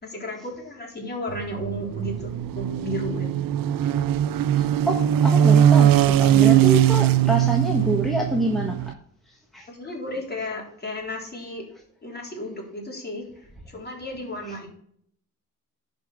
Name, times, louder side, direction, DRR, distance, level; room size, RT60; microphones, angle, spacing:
voice 1, 0.0-3.3 9.7-11.6 12.0-14.7, left 1 dB, 30° left, 0 dB, 3.8 m, -33 dB
sound 1, 1.3-8.9, right 10 dB, 75° right, 0.6 m, -20 dB
voice 2, 4.5-8.9 9.3-9.7, right 1 dB, ahead, -1 dB, 1.6 m, -27 dB
11.0 x 5.3 x 6.2 m, 0.66 s
cardioid pair, 110°, 34 cm